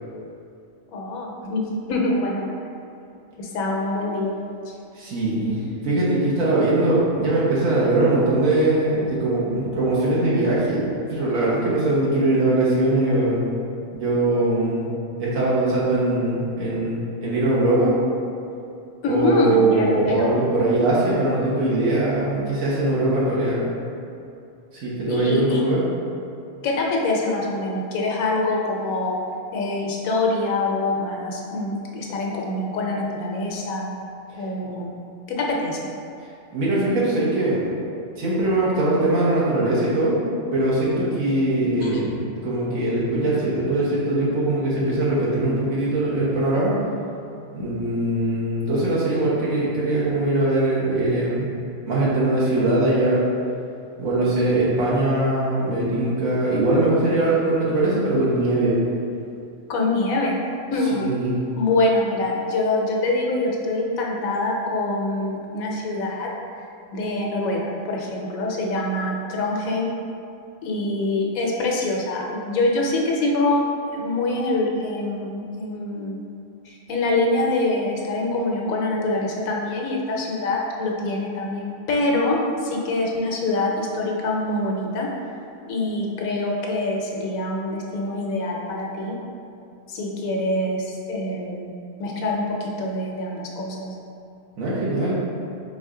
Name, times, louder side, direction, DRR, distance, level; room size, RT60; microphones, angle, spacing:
voice 1, 0.9-2.5 3.4-4.7 19.0-20.3 25.1-25.6 26.6-29.2 29.5-34.0 34.4-35.0 35.3-35.8 41.8-42.0 59.7-60.4 60.7-61.1 61.6-66.3 66.9-69.9 70.6-73.6 73.9-76.3 76.6-85.1 85.7-89.2 89.9-91.7 92.0-93.9, left 2 dB, 85° left, -1 dB, 1.1 m, -25 dB
voice 2, 4.9-5.6 5.8-13.4 13.9-14.9 15.2-17.9 19.1-23.6 24.7-25.8 36.5-37.6 38.2-40.2 40.5-46.7 47.5-51.5 51.8-53.2 54.0-58.8 60.9-61.4 94.6-95.1, right 2 dB, 80° right, -8 dB, 1.5 m, -21 dB
3.9 x 3.5 x 3.7 m, 2.6 s
omnidirectional pair, 1.4 m